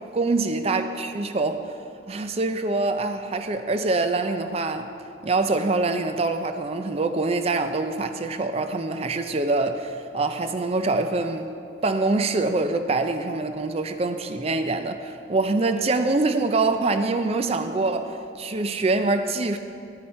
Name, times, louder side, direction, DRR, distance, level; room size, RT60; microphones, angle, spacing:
voice 1, 0.1-1.7 2.1-4.9 5.2-11.5 11.8-19.6, right 3 dB, 35° right, 8 dB, 0.4 m, -25 dB
11.0 x 9.9 x 4.3 m, 2.6 s
head